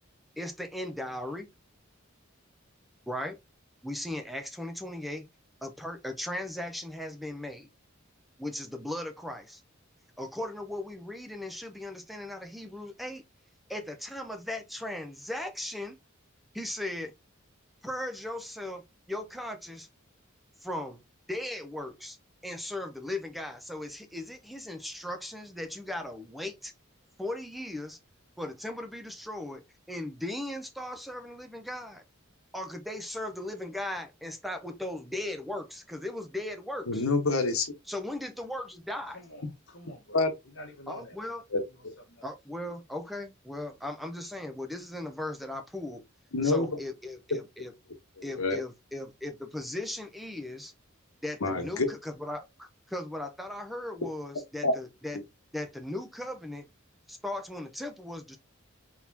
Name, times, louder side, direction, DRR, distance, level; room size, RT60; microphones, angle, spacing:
voice 1, 0.4-1.5 3.1-3.4 3.8-5.3 5.6-7.7 8.4-9.6 10.2-13.2 13.7-16.0 16.5-17.1 17.8-19.9 20.6-21.0 21.3-22.2 22.4-26.7 27.2-28.0 28.4-32.0 32.5-37.0 37.9-39.2 40.9-41.4 42.2-46.0 46.4-47.7 48.2-50.7 51.2-55.2 55.5-56.7 57.1-58.4, left 1 dB, ahead, 0.6 m, -37 dB
voice 2, 36.9-37.7 40.1-40.3 41.5-41.9 46.3-46.7 48.4-48.6 51.4-51.9 54.6-54.7, left 3 dB, 85° left, 1.1 m, -26 dB
voice 3, 39.1-40.3 40.5-41.1 42.1-42.2, left 1 dB, 60° left, 1.5 m, -47 dB
4.2 x 4.1 x 2.7 m
head